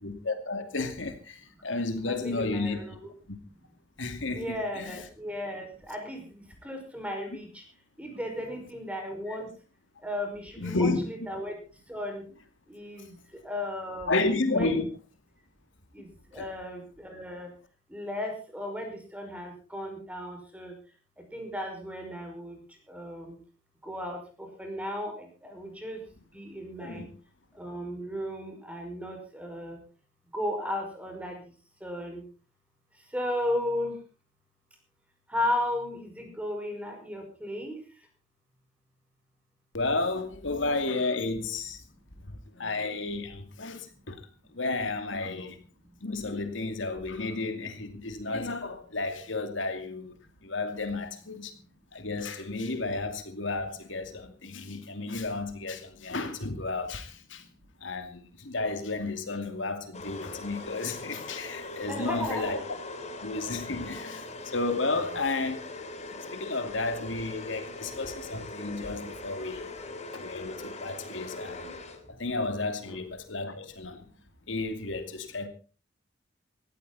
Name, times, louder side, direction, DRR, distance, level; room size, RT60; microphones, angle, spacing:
voice 1, 0.0-2.8 4.0-5.0 9.3-9.4 10.6-11.0 14.1-14.9 16.4-16.5 26.8-27.1 39.7-41.8 42.6-44.2 44.5-45.6 46.0-50.1 50.4-51.5 51.9-57.4 57.8-62.6 63.2-64.2 64.5-65.6 66.3-69.6 70.1-71.7 72.2-74.0 74.5-75.5, left 3 dB, 80° left, 2.5 m, -32 dB
voice 2, 2.0-3.1 4.3-6.2 6.6-7.5 8.0-9.5 10.0-11.5 11.9-12.2 12.7-13.1 13.4-14.2 14.5-14.8 15.9-16.1 16.3-17.5 17.9-20.7 21.3-22.6 22.9-23.3 23.8-24.2 24.6-26.0 26.3-27.1 27.6-29.8 30.3-31.4 31.8-32.2 33.1-33.9 35.3-37.8 61.9-62.6 72.9-73.0, left 1 dB, 5° right, 5.5 m, -35 dB
sound 1, 59.9-72.3, left 2 dB, 40° left, 2.7 m, -41 dB
18.0 x 14.5 x 4.2 m
head